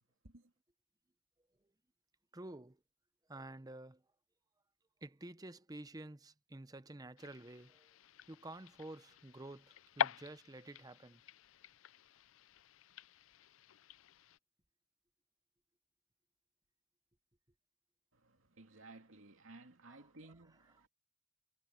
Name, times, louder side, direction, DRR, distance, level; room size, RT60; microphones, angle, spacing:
voice 1, 2.3-2.8 3.3-4.0 5.0-7.9 8.3-11.2, right 2 dB, 20° right, 0.8 m, -50 dB
sound 1, 7.2-14.4, left 8 dB, 75° left, 0.5 m, -45 dB
voice 2, 18.1-20.9, right 2 dB, 75° right, 2.5 m, -57 dB
head